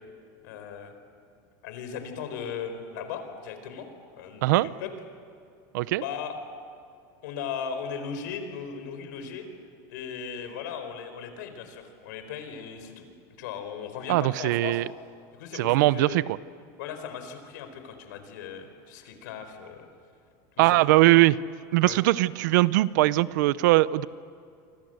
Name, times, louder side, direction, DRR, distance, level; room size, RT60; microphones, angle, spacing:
voice 1, 0.4-0.9 1.6-3.9 4.1-4.9 6.0-6.3 7.2-9.5 9.9-13.1 13.4-14.8 15.3-16.2 16.8-19.9 20.6-20.8 21.8-22.0, left 7 dB, 85° left, 8 dB, 4.5 m, -37 dB
voice 2, 14.1-14.9 15.5-16.4 20.6-21.4 21.7-24.1, right 18 dB, 80° right, 18 dB, 0.8 m, -21 dB
29.5 x 25.0 x 8.0 m, 2.4 s
supercardioid pair, 155°, 10 cm